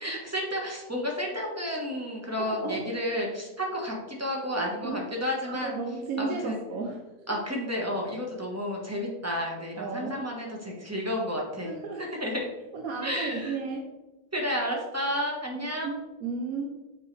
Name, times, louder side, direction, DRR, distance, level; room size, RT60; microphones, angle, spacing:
voice 1, 0.0-5.7 6.2-6.6 7.3-11.7 12.0-12.5 13.0-13.5 14.3-15.9, equal, 10° right, -1 dB, 1.3 m, -31 dB
voice 2, 2.4-2.9 4.6-5.0 5.4-7.0 7.3-7.4 9.8-10.3 11.6-12.1 12.7-13.9 15.5-16.7, right 4 dB, 65° right, 2 dB, 1.1 m, -34 dB
8.4 x 4.7 x 3.4 m, 1.1 s
omnidirectional pair, 1.7 m